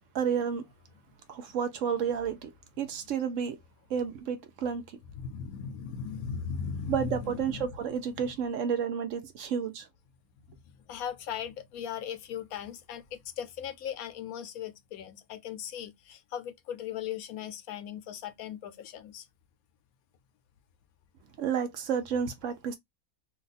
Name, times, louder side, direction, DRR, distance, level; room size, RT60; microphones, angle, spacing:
voice 1, 0.1-0.7 1.3-2.5 2.8-3.6 3.9-4.8 6.9-9.9 21.4-22.8, right 7 dB, 65° right, 0.9 m, -31 dB
voice 2, 5.2-7.6 8.1-8.3 10.9-19.2, left 7 dB, 80° left, 1.0 m, -38 dB
2.7 x 2.3 x 4.0 m
omnidirectional pair, 1.6 m